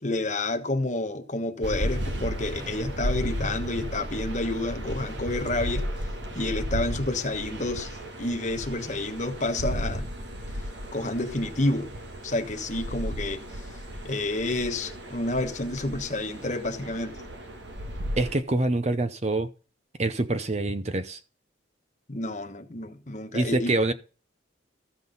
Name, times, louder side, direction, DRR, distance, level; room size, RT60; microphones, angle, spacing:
voice 1, 0.0-5.9 6.3-10.0 10.9-11.9 12.2-13.4 14.0-17.1 22.1-23.8, left 2 dB, 40° left, 1.2 m, -29 dB
sound 1, 1.6-18.4, equal, 65° right, 1.7 m, -34 dB
voice 2, 18.2-19.5 20.0-21.2 23.3-23.9, right 2 dB, 35° right, 0.7 m, -25 dB
14.0 x 6.1 x 5.4 m
head